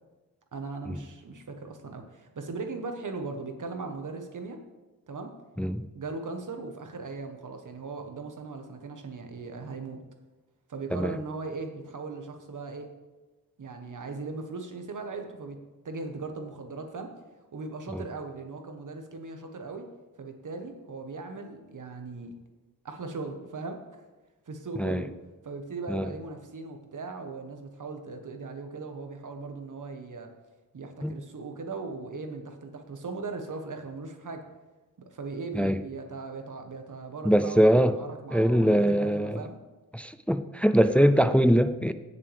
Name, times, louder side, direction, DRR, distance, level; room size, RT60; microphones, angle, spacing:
voice 1, 0.5-4.6 5.1-5.3 5.9-10.0 10.7-12.9 13.6-15.6 15.8-17.2 17.5-19.9 20.2-22.3 22.8-24.0 24.5-25.1 25.4-30.3 30.7-34.5 35.0-39.6, right 3 dB, 55° right, 1.4 m, -38 dB
voice 2, 37.2-38.0 38.3-39.4 39.9-41.9, equal, 5° left, 0.3 m, -22 dB
16.0 x 6.7 x 3.5 m
wide cardioid pair, 140°, 36 cm